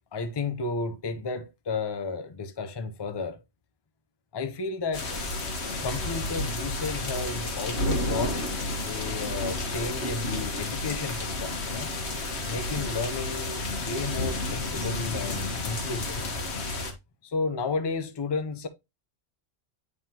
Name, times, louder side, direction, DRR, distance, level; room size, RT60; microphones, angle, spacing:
voice 1, 0.1-3.4 4.3-5.1 5.8-8.4 8.8-11.9 12.4-16.2 17.2-18.7, left 4 dB, 30° left, 0.5 m, -33 dB
sound 1, 4.9-16.9, left 2 dB, 70° left, 1.5 m, -31 dB
9.6 x 3.6 x 2.8 m
omnidirectional pair, 1.2 m